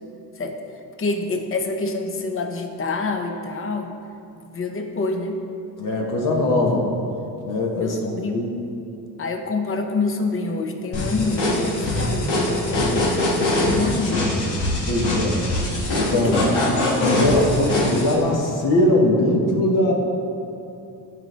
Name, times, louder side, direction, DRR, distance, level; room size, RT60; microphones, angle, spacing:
voice 1, 1.0-3.9 4.4-5.4 7.7-8.5 9.2-13.2 13.7-14.2 16.2-16.6, left 3 dB, 35° left, 4 dB, 0.9 m, -27 dB
voice 2, 5.8-7.1 7.4-8.0 8.3-8.5 14.9-15.5 15.9-16.4 16.7-19.9, left 1 dB, 55° left, -1 dB, 1.4 m, -21 dB
sound 1, 10.9-18.1, left 1 dB, 85° left, 1.9 m, -22 dB
13.5 x 4.6 x 3.4 m, 2.8 s
cardioid pair, 95°, 38 cm